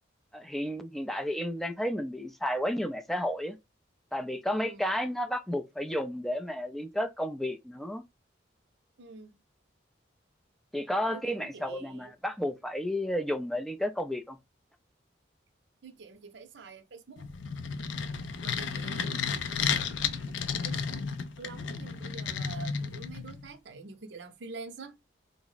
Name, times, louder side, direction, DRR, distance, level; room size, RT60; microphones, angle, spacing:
voice 1, 0.3-3.6 4.1-8.0 10.7-14.4, equal, ahead, 0.3 m, -32 dB
voice 2, 4.5-4.9 9.0-9.4 11.1-12.1 15.8-17.3 18.4-21.1 21.4-25.0, right 4 dB, 70° right, 0.6 m, -47 dB
sound 1, 17.2-23.5, left 6 dB, 80° left, 0.5 m, -33 dB
3.4 x 2.0 x 3.9 m
head